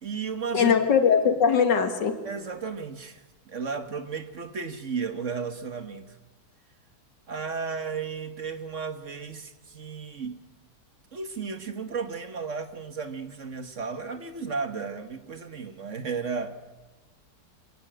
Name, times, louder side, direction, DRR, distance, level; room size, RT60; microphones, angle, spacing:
voice 1, 0.0-0.8 2.2-3.2 3.5-6.2 7.3-10.4 11.1-16.5, right 5 dB, 45° right, 9 dB, 1.5 m, -34 dB
voice 2, 0.5-2.2, left 6 dB, 75° left, 8 dB, 2.5 m, -21 dB
25.5 x 18.0 x 9.0 m, 1.2 s
omnidirectional pair, 1.9 m